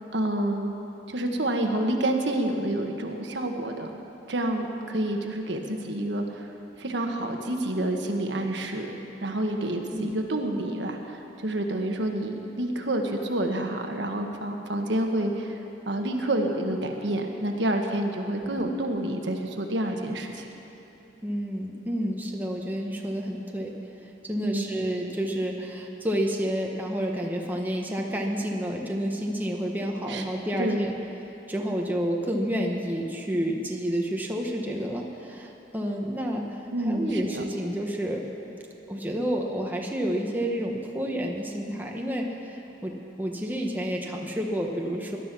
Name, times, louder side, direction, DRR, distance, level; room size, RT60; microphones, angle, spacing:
voice 1, 0.1-0.7 1.1-4.0 4.3-6.5 6.8-8.9 9.2-15.6 15.9-20.5 24.4-24.7 30.1-30.2 30.6-30.8 36.7-37.4, right 1 dB, 65° right, 3 dB, 1.4 m, -28 dB
voice 2, 21.2-23.7 24.0-30.9 31.5-38.2 38.9-45.2, equal, 10° right, 0 dB, 1.2 m, -30 dB
19.5 x 12.0 x 6.1 m, 2.9 s
head